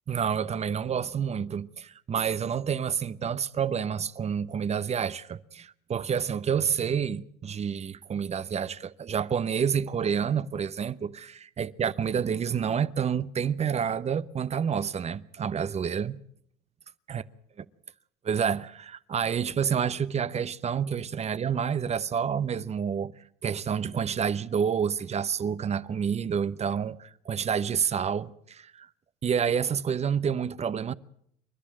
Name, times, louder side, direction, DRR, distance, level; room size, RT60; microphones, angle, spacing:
voice 1, 0.1-16.2 17.1-17.2 17.6-17.7 18.2-23.1 23.4-28.9 29.2-30.9, right 7 dB, 35° right, 0.9 m, -29 dB
28.5 x 11.5 x 8.7 m
supercardioid pair, 85°, 19 cm